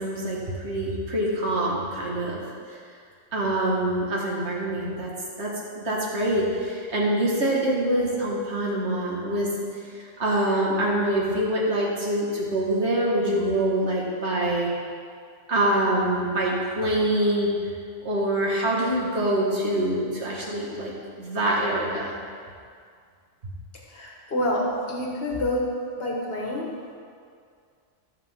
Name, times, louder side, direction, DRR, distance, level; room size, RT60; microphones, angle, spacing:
voice 1, 0.0-2.4 2.7-2.8 3.3-5.1 5.4-9.5 10.2-14.7 15.5-17.5 18.0-20.9 21.2-22.1, right 1 dB, 60° right, -4 dB, 2.0 m, -25 dB
voice 2, 23.9-25.6 26.0-26.9, left 1 dB, 50° left, -2 dB, 1.8 m, -28 dB
14.0 x 6.6 x 3.7 m, 2.2 s
omnidirectional pair, 1.3 m